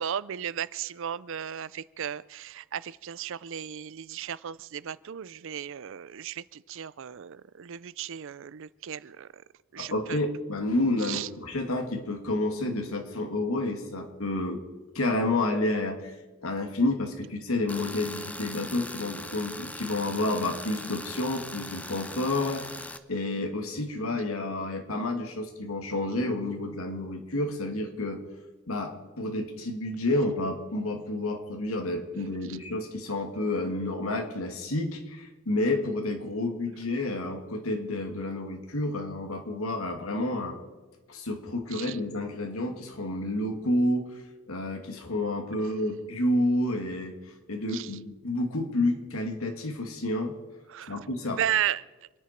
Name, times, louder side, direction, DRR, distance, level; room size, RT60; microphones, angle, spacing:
voice 1, 0.0-9.4 9.7-10.2 11.0-11.3 32.5-32.6 41.7-42.0 45.6-45.7 47.7-47.9 50.7-51.8, right 9 dB, 65° right, 19 dB, 0.5 m, -35 dB
voice 2, 9.8-14.6 14.9-16.1 16.4-22.7 23.1-28.2 28.7-40.6 41.1-44.1 44.5-47.2 47.5-50.3 50.9-51.4, left 2 dB, 90° left, 4 dB, 2.3 m, -30 dB
Tools, 17.7-23.0, left 2 dB, 5° left, 0.8 m, -40 dB
28.0 x 10.5 x 4.5 m, 1.3 s
head